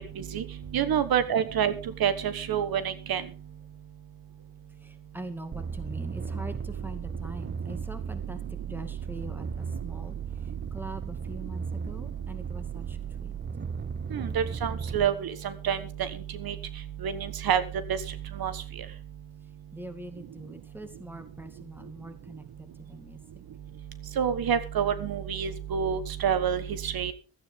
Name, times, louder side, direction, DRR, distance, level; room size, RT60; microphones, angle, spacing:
voice 1, 0.7-1.7 2.0-3.2 14.1-16.1 16.4-16.5 17.0-17.6 17.9-18.0 18.4-18.5 24.2-27.1, right 8 dB, 80° right, 12 dB, 1.4 m, -27 dB
voice 2, 4.8-8.4 8.7-10.2 10.7-13.3 19.7-23.2, right 1 dB, 5° right, 8 dB, 2.2 m, -43 dB
sound 1, 5.5-15.1, right 6 dB, 30° right, 0.8 m, -35 dB
16.0 x 13.5 x 3.7 m, 0.34 s
wide cardioid pair, 130°, 36 cm